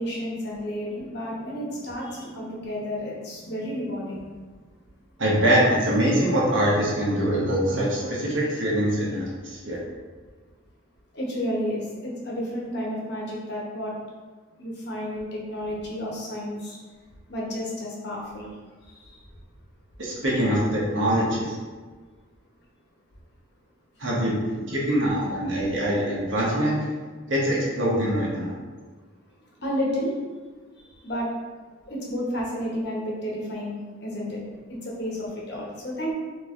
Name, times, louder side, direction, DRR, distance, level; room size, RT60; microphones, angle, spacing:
voice 1, 0.0-4.3 11.1-13.9 14.6-16.8 17.3-18.5 19.0-19.2 24.0-24.1 29.6-30.1 31.0-31.3 31.9-34.4 34.7-36.1, equal, 55° left, -4 dB, 1.1 m, -31 dB
voice 2, 5.2-9.8 20.0-21.5 24.0-26.8 27.3-28.5, equal, 70° right, -6 dB, 1.2 m, -23 dB
3.7 x 3.2 x 3.7 m, 1.4 s
head